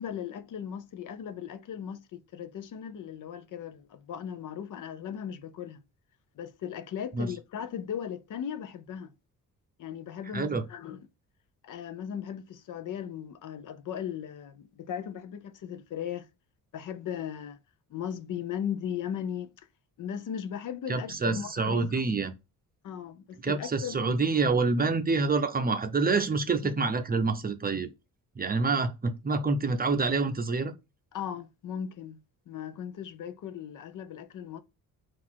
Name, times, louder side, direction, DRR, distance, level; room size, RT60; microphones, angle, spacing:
voice 1, 0.0-5.8 6.4-9.1 9.8-11.1 11.6-16.3 16.7-17.6 17.9-19.5 20.0-22.0 22.8-24.2 26.6-26.7 31.1-32.2 32.5-34.6, left 8 dB, 60° left, 0.6 m, -37 dB
voice 2, 20.9-22.3 23.4-27.9 28.4-30.7, right 4 dB, 25° right, 0.6 m, -27 dB
3.9 x 2.5 x 4.4 m
cardioid pair, 115°, 35 cm